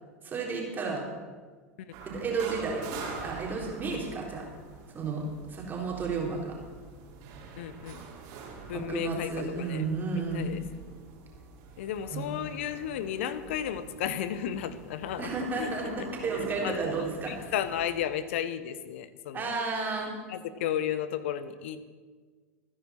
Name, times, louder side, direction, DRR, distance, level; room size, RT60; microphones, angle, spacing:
voice 1, 0.2-1.0 2.0-2.9 3.1-4.5 4.9-6.6 8.7-10.6 12.1-12.3 15.2-17.5 19.3-20.1, right 4 dB, 25° right, -2 dB, 3.9 m, -32 dB
sound 1, 1.9-18.0, right 5 dB, 50° right, 3.9 m, -45 dB
voice 2, 7.6-8.0 8.7-9.8 10.1-10.6 11.8-15.3 15.6-15.7 16.3-19.6 20.3-21.8, left 10 dB, 55° left, 14 dB, 1.0 m, -34 dB
26.5 x 10.0 x 4.3 m, 1.5 s
figure-of-eight pair, 85°, 8 cm